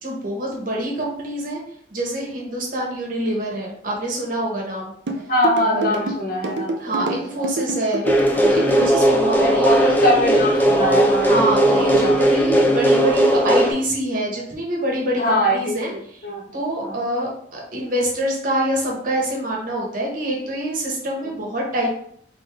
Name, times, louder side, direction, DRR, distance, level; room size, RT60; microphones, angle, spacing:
voice 1, 0.0-1.6 1.9-4.9 5.6-6.1 6.8-8.1 8.3-9.7 11.2-16.2 16.5-21.9, right 1 dB, 50° right, -2 dB, 1.4 m, -26 dB
sound 1, 5.1-9.0, right 2 dB, 70° right, 0.5 m, -26 dB
voice 2, 5.3-7.5 9.2-12.2 12.5-12.6 15.2-15.7 16.2-16.4 16.8-16.9, equal, 50° left, -2 dB, 1.3 m, -22 dB
sound 2, 8.0-13.7, equal, 10° left, 0.7 m, -17 dB
3.8 x 3.6 x 3.6 m, 0.64 s
head